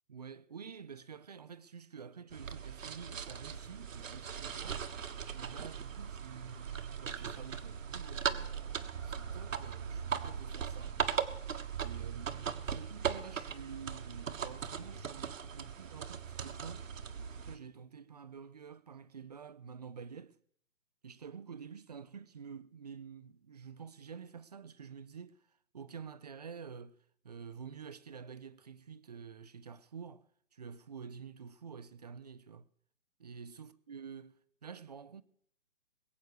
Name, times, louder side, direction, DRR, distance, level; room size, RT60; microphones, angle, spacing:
voice 1, 0.1-4.8 5.3-11.0 11.8-16.8 17.4-20.4 21.0-27.0 27.2-32.7 33.2-35.2, right 6 dB, 30° right, 0.5 m, -49 dB
sound 1, 2.3-17.6, right 7 dB, 75° right, 1.5 m, -39 dB
21.5 x 8.2 x 6.5 m
hypercardioid pair, 160°, 39 cm